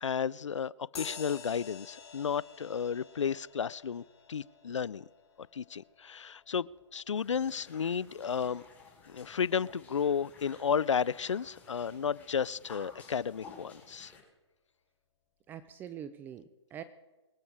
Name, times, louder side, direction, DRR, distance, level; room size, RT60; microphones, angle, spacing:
voice 1, 0.0-5.0 5.5-6.7 6.9-8.6 9.1-14.1, left 7 dB, 80° left, 23 dB, 0.5 m, -33 dB
sound 1, 0.9-8.8, left 6 dB, 55° left, 3.4 m, -50 dB
sound 2, 7.2-14.2, left 4 dB, 10° left, 4.6 m, -54 dB
voice 2, 15.5-16.8, right 9 dB, 10° right, 13 dB, 0.5 m, -44 dB
25.0 x 9.0 x 4.9 m, 1.2 s
hypercardioid pair, 135°, 15 cm